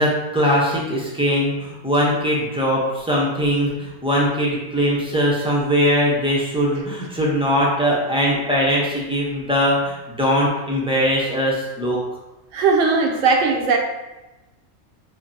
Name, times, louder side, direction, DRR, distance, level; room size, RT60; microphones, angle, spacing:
voice 1, 0.0-12.0, equal, 10° right, -5 dB, 0.4 m, -21 dB
voice 2, 12.5-13.8, right 4 dB, 75° right, 3 dB, 0.9 m, -18 dB
5.6 x 2.2 x 2.6 m, 1.0 s
omnidirectional pair, 1.4 m